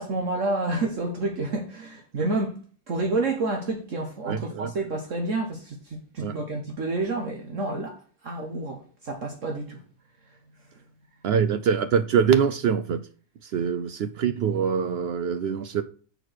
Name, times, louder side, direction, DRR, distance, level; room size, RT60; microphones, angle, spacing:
voice 1, 0.0-2.6 2.9-9.8 10.3-10.4, right 2 dB, 55° right, 1.4 m, -29 dB
voice 2, 4.2-4.7 6.2-6.3 11.2-13.0 13.4-15.8, right 7 dB, 80° right, 0.5 m, -24 dB
6.7 x 4.5 x 6.3 m
omnidirectional pair, 1.6 m